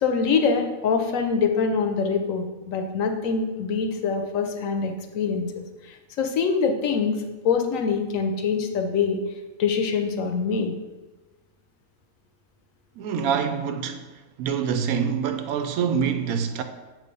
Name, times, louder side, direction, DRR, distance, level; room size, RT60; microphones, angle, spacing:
voice 1, 0.0-7.2 7.4-9.2 9.6-10.7, left 5 dB, 70° left, 1.0 m, -24 dB
voice 2, 13.0-14.0 14.4-16.6, right 7 dB, 75° right, 1.1 m, -25 dB
7.5 x 3.2 x 5.3 m
omnidirectional pair, 1.5 m